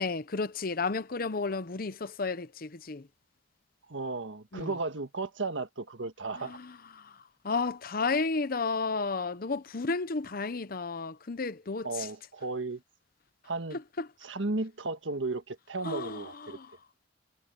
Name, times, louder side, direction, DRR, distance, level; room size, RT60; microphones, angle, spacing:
voice 1, 0.0-3.1 4.5-4.7 6.4-12.1 13.7-14.1 15.8-16.8, left 4 dB, 50° left, 0.8 m, -33 dB
voice 2, 3.9-6.6 11.8-12.8 13.4-13.8 14.2-16.6, right 3 dB, 90° right, 1.5 m, -34 dB
head